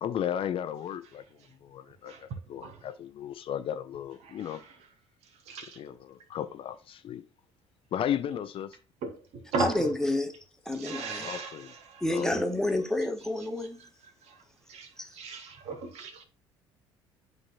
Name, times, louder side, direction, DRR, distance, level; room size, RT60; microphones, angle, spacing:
voice 1, 0.0-1.2 1.6-4.6 5.8-7.2 7.9-8.8 11.1-11.7 12.1-12.3, left 9 dB, 40° left, 0.6 m, -35 dB
voice 2, 5.5-5.8 9.0-9.9 10.7-12.0 14.3-14.4 14.7-16.2, right 4 dB, 50° right, 1.3 m, -36 dB
voice 3, 9.6-10.3 10.6-11.3 12.0-13.8 15.0-15.1, left 1 dB, 5° left, 1.4 m, -29 dB
11.5 x 4.0 x 2.3 m
figure-of-eight pair, 55°, 14 cm